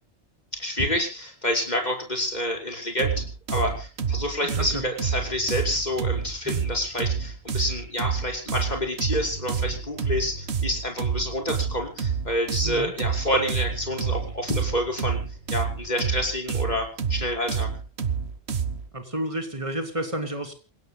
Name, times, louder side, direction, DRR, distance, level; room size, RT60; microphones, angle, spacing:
voice 1, 0.5-15.2 15.5-17.7, left 1 dB, 40° left, 2 dB, 5.4 m, -28 dB
sound 1, 3.0-18.9, right 6 dB, 65° right, 1.4 m, -28 dB
sound 2, 5.3-16.3, right 2 dB, 45° right, 5.9 m, -46 dB
voice 2, 12.6-12.9 18.9-20.5, right 1 dB, 30° right, 5 dB, 3.3 m, -31 dB
28.0 x 17.0 x 2.3 m, 0.34 s
omnidirectional pair, 1.2 m